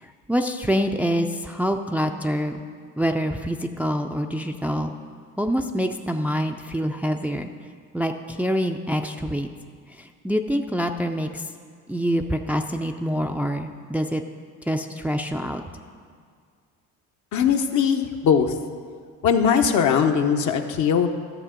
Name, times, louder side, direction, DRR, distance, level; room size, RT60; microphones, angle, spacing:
voice 1, 0.0-2.5 3.0-4.9 5.4-7.5 7.9-9.5 10.0-11.5 11.9-14.2 14.7-15.6, equal, 5° right, 4 dB, 0.5 m, -26 dB
voice 2, 17.3-18.5 19.2-21.1, left 7 dB, 55° left, 5 dB, 1.0 m, -20 dB
13.0 x 6.7 x 5.2 m, 2.1 s
supercardioid pair, 80°, 36 cm